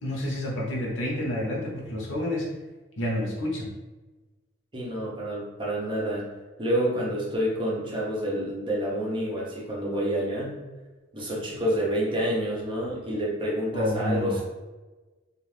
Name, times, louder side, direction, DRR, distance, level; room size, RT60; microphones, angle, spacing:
voice 1, 0.0-2.5 3.0-3.7 13.7-14.4, left 1 dB, 80° left, -3 dB, 0.9 m, -29 dB
voice 2, 4.7-6.2 6.6-10.6 11.1-14.4, equal, 25° right, -5 dB, 0.7 m, -28 dB
2.5 x 2.4 x 3.3 m, 1.2 s
head